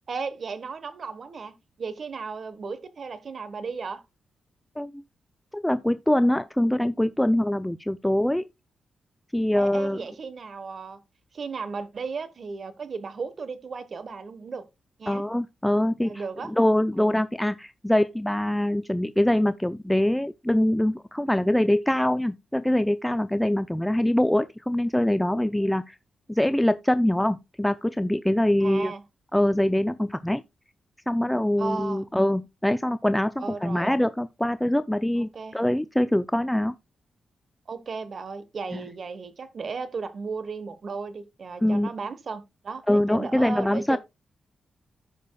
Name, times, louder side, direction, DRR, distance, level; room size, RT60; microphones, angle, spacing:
voice 1, 0.1-4.0 9.6-11.0 11.3-14.7 15.0-15.2 16.0-16.5 17.0-17.1 28.6-29.0 31.6-32.0 33.4-33.9 35.3-35.6 37.7-44.0, right 4 dB, 55° right, 1.0 m, -35 dB
voice 2, 5.5-8.5 9.3-10.0 15.1-25.9 26.3-28.9 29.3-30.4 31.1-33.3 33.6-36.7 38.7-38.8 41.6-41.9 42.9-44.0, left 1 dB, 5° left, 0.4 m, -24 dB
15.0 x 5.1 x 2.2 m
cardioid pair, 85°, 0 cm